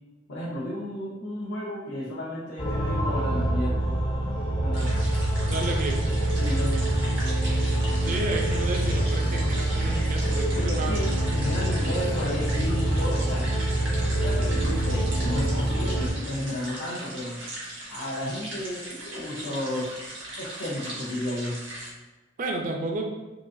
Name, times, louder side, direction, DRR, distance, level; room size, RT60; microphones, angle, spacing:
voice 1, 0.3-3.8 4.6-4.9 6.4-6.7 10.5-13.5 14.2-17.4 17.9-19.9 20.4-21.6, left 1 dB, 75° left, -8 dB, 0.7 m, -33 dB
sound 1, 2.6-16.1, right 1 dB, 30° left, 0.5 m, -25 dB
sound 2, 4.7-21.9, right 1 dB, 80° right, 1.4 m, -39 dB
voice 2, 5.5-6.1 8.0-11.0 22.4-23.0, right 2 dB, 45° right, 2 dB, 0.4 m, -31 dB
3.8 x 2.5 x 2.6 m, 1.2 s
head